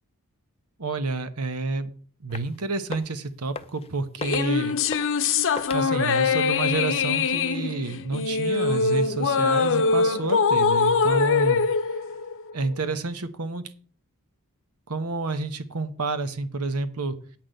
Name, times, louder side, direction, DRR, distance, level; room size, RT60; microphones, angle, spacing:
voice 1, 0.8-1.9 2.2-4.7 5.7-11.6 12.5-13.6 14.9-17.2, right 3 dB, 80° right, 10 dB, 1.1 m, -29 dB
sound 1, 2.3-2.6 2.8-3.2 3.5-3.9 4.2-4.5 4.9-5.2 5.6-5.8, left 4 dB, 25° left, 0.6 m, -36 dB
sound 2, 4.2-12.8, left 5 dB, 60° left, 0.8 m, -23 dB
8.7 x 6.0 x 7.7 m, 0.43 s
head